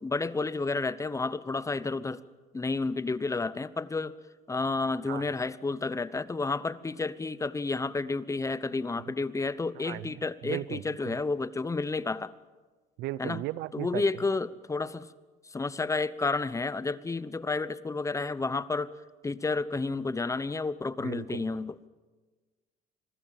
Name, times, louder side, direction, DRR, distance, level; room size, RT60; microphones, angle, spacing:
voice 1, 0.0-2.2 2.5-4.2 4.5-12.3 13.2-13.4 13.7-15.1 15.5-18.9 19.2-21.7, left 3 dB, 20° left, 16 dB, 0.9 m, -31 dB
voice 2, 9.8-11.2 13.0-14.0 21.0-21.4, right 16 dB, 90° right, 19 dB, 0.7 m, -37 dB
26.5 x 21.0 x 7.3 m, 1.3 s
cardioid pair, 110°, 17 cm